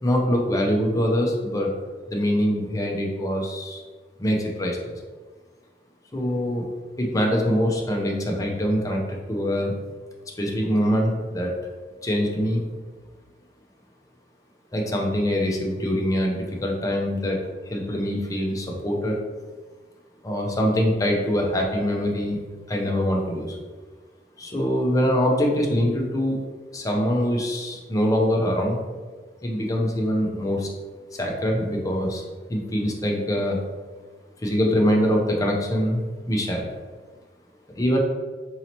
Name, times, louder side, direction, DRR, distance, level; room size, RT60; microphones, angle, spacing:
voice 1, 0.0-1.7 2.1-3.8 4.2-4.9 6.1-6.6 7.0-9.7 10.4-11.5 12.0-12.6 14.7-17.4 17.7-19.2 20.2-22.4 22.7-23.6 24.4-26.4 26.7-28.8 29.4-30.7 31.1-32.2 32.5-33.6 34.4-36.7 37.8-38.0, equal, 20° left, 0 dB, 0.5 m, -24 dB
4.0 x 2.8 x 2.9 m, 1.4 s
head